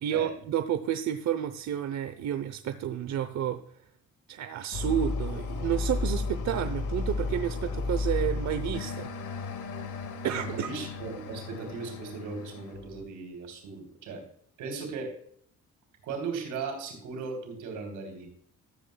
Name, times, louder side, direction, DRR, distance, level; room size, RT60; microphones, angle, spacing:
voice 1, 0.0-3.6 4.3-9.1 10.2-10.7, right 10 dB, 65° right, 9 dB, 0.8 m, -30 dB
sound 1, 4.7-13.0, left 3 dB, 85° left, 1.9 m, -33 dB
voice 2, 10.2-14.2 14.6-15.1 16.0-18.3, right 4 dB, 90° right, 4 dB, 3.5 m, -37 dB
13.5 x 8.4 x 2.3 m, 0.63 s
cardioid pair, 90°, 30 cm